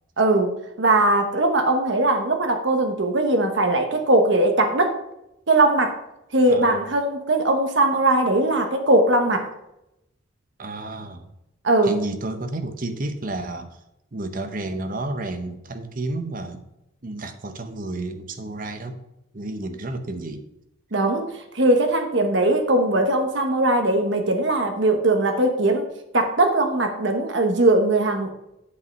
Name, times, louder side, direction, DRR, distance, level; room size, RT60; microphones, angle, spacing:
voice 1, 0.2-5.0 5.5-6.0 6.3-9.5 11.6-11.9 20.9-25.8 26.1-28.3, right 2 dB, 60° right, 4 dB, 1.1 m, -20 dB
voice 2, 10.6-11.3 11.8-13.8 14.1-16.7 17.0-19.0 19.3-20.4, right 2 dB, 40° right, 8 dB, 0.8 m, -31 dB
8.4 x 5.5 x 5.2 m, 0.86 s
head